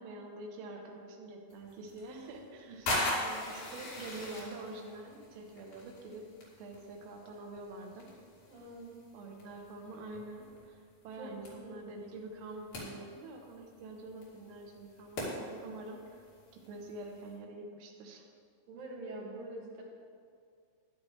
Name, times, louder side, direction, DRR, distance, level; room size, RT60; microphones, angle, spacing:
voice 1, 0.0-6.3 6.6-8.1 9.1-16.2 16.5-18.3, right 2 dB, 80° right, 1 dB, 3.6 m, -46 dB
sound 1, 1.5-17.3, left 1 dB, 55° left, 4.0 m, -42 dB
voice 2, 8.5-8.9 11.2-11.8 18.7-19.8, right 2 dB, 55° right, -5 dB, 3.3 m, -45 dB
13.0 x 11.0 x 3.3 m, 2.3 s
omnidirectional pair, 5.7 m